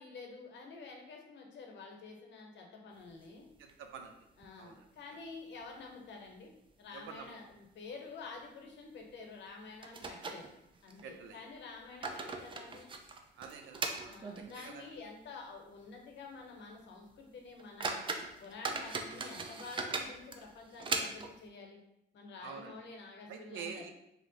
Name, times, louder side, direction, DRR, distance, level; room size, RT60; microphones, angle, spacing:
voice 1, 0.0-3.5 4.4-6.5 6.8-10.5 10.8-12.9 14.1-18.1 18.4-21.8 22.1-23.8, left 4 dB, 65° left, 1 dB, 0.8 m, -49 dB
sound 1, 3.1-4.1 4.4-4.5 4.8-4.9 5.5-6.0 6.3-6.5 7.1-7.3 7.6-7.7 9.1-9.2 9.8-11.0 11.7-14.9 15.2-15.3 15.9-16.0 16.4-16.6 17.1-17.2 17.6-21.5, right 3 dB, 25° right, 0.4 m, -40 dB
voice 2, 3.6-4.3 4.6-4.8 6.9-7.3 11.0-11.4 13.4-14.8 22.4-22.8 23.3-23.9, right 6 dB, 75° right, 5 dB, 0.5 m, -47 dB
2.8 x 2.1 x 3.8 m, 0.83 s
cardioid pair, 90°, 20 cm